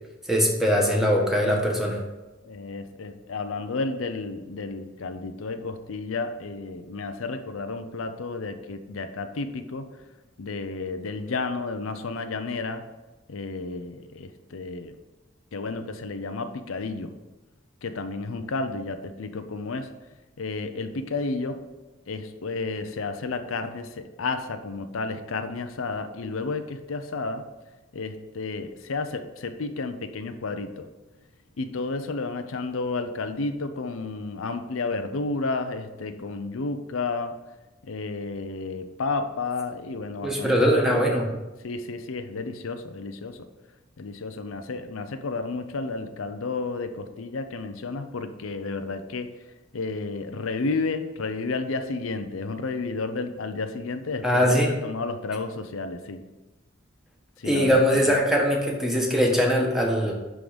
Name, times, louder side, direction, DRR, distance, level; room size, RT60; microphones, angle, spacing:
voice 1, 0.3-2.0 40.2-41.3 54.2-54.7 57.4-60.1, equal, ahead, -1 dB, 1.4 m, -21 dB
voice 2, 2.4-10.1 10.4-12.9 13.3-15.0 15.5-17.2 17.8-19.9 20.4-21.6 22.1-27.5 27.9-30.9 31.6-37.4 37.8-41.0 41.6-43.5 44.0-49.3 49.7-56.2 57.4-58.1, left 3 dB, 85° left, 8 dB, 0.6 m, -32 dB
11.0 x 3.8 x 5.1 m, 1.1 s
head